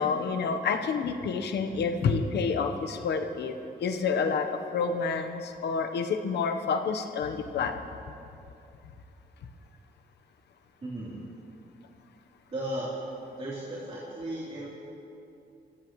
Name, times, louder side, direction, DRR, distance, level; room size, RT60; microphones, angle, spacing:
voice 1, 0.0-3.5 3.8-7.7, left 5 dB, 90° left, 6 dB, 1.1 m, -28 dB
voice 2, 10.8-11.2 12.5-12.9 13.4-14.7, right 1 dB, 35° right, -9 dB, 3.5 m, -35 dB
24.0 x 16.5 x 3.2 m, 2.6 s
cardioid pair, 115°, 17 cm